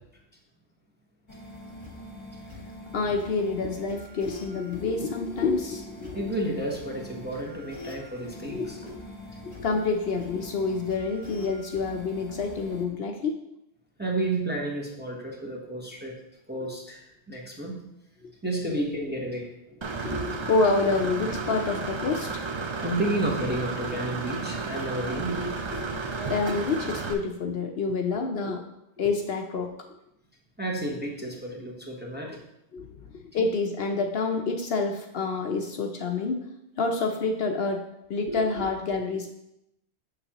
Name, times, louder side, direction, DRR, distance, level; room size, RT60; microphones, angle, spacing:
sound 1, 1.3-12.9, left 1 dB, 25° left, 1.0 m, -43 dB
voice 1, 2.9-6.3 8.5-8.8 9.6-13.4 20.5-22.4 26.3-28.6 29.0-29.7 32.7-36.4 36.8-37.8 38.1-39.3, left 4 dB, 65° left, 3 dB, 0.8 m, -27 dB
voice 2, 6.1-8.9 14.0-16.1 16.5-17.8 18.4-19.8 20.1-20.4 22.8-25.9 30.6-32.4 38.3-38.4, right 1 dB, 10° right, -2 dB, 0.9 m, -31 dB
Engine / Mechanisms, 19.8-27.1, right 4 dB, 40° right, 0.4 m, -33 dB
7.0 x 6.8 x 2.9 m, 0.83 s
omnidirectional pair, 1.2 m